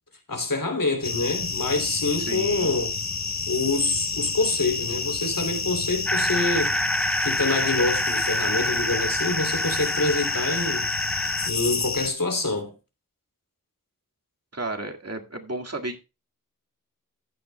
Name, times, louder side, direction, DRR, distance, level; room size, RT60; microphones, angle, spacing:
voice 1, 0.3-2.9 3.5-6.8 7.2-10.9 11.5-12.7, left 3 dB, 80° left, 3.0 m, -26 dB
sound 1, 1.0-12.1, left 5 dB, 55° left, 0.9 m, -30 dB
voice 2, 2.2-2.7 14.5-16.0, right 2 dB, 50° right, 2.0 m, -33 dB
sound 2, 6.1-11.5, equal, 5° left, 0.9 m, -27 dB
14.5 x 9.6 x 2.2 m
wide cardioid pair, 50°, 33 cm